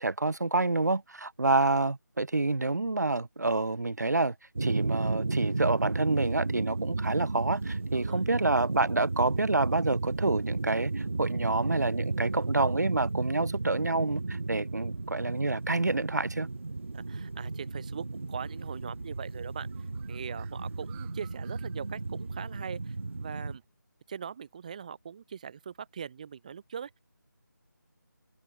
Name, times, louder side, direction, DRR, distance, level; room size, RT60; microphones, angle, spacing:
voice 1, 0.0-4.3 4.6-16.5, right 2 dB, 55° right, 1.1 m, -28 dB
sound 1, 4.6-23.6, right 3 dB, 40° right, 0.4 m, -33 dB
voice 2, 7.9-8.2 16.9-23.6 24.1-27.0, right 7 dB, 20° right, 2.8 m, -41 dB
Bird, 18.4-23.6, right 40 dB or more, 5° right, 0.9 m, -61 dB
figure-of-eight pair, 165°, 11 cm